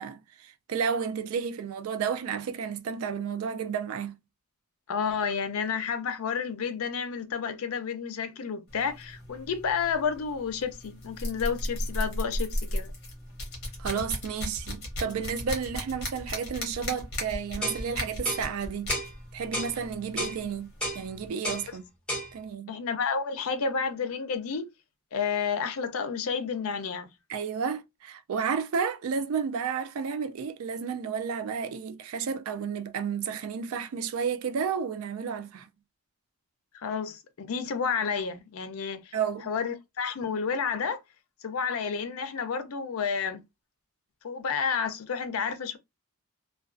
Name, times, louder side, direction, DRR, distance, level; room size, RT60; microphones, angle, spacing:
voice 1, 0.0-4.1 13.8-18.9 19.3-21.8 22.3-22.7 27.3-35.7 39.1-39.5, right 6 dB, 80° right, 0.4 m, -32 dB
voice 2, 4.9-12.9 22.7-24.7 25.1-27.1 36.7-39.1 39.5-41.0 41.4-43.4 44.2-45.8, left 6 dB, 80° left, 0.5 m, -30 dB
sound 1, 8.7-21.3, left 1 dB, 50° left, 0.9 m, -36 dB
sound 2, 17.6-17.8 18.2-18.5 18.9-19.1 19.5-19.7 20.2-20.4 20.8-21.0 21.4-21.7 22.1-22.3, equal, 5° left, 0.6 m, -31 dB
2.3 x 2.2 x 2.4 m
head